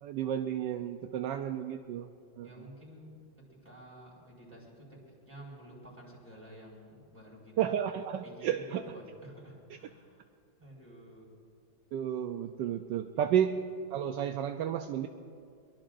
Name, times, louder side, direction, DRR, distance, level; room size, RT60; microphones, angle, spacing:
voice 1, 0.0-2.1 2.4-2.5 7.6-8.8 11.9-13.6 13.9-15.1, right 9 dB, 75° right, 6 dB, 1.2 m, -32 dB
voice 2, 2.4-3.2 3.5-7.8 8.2-10.3 10.6-11.3 13.1-13.4, right 1 dB, 20° right, -4 dB, 5.1 m, -51 dB
23.5 x 22.5 x 2.6 m, 2.3 s
omnidirectional pair, 2.1 m